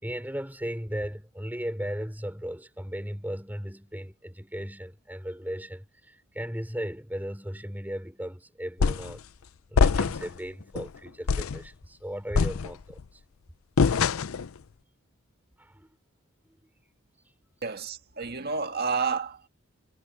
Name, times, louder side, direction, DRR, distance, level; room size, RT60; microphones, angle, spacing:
voice 1, 0.0-9.2 9.7-13.2 15.6-16.0, equal, 10° right, 5.2 m, -36 dB
sound 1, 8.8-9.2 9.8-10.4 10.8-10.9 11.3-11.6 12.3-13.0 13.8-14.5, left 5 dB, 85° left, 0.5 m, -24 dB
voice 2, 17.6-19.5, right 5 dB, 50° right, 1.8 m, -30 dB
head